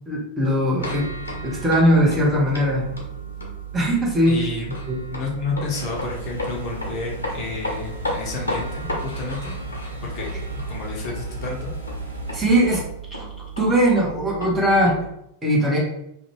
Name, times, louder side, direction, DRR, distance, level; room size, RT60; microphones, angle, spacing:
voice 1, 0.1-1.1 1.4-2.9 3.7-4.4 4.9-5.0 12.3-12.8 13.6-15.0 15.4-15.8, equal, 15° right, -4 dB, 0.9 m, -19 dB
sound 1, 0.8-15.1, right 2 dB, 75° left, 0.6 m, -33 dB
voice 2, 4.3-4.7 5.1-9.6 10.0-10.3 10.7-11.7, left 4 dB, 40° left, -2 dB, 0.6 m, -31 dB
sound 2, 5.7-12.8, equal, 85° right, 0.5 m, -35 dB
2.5 x 2.2 x 3.0 m, 0.81 s
figure-of-eight pair, 90°, 0 cm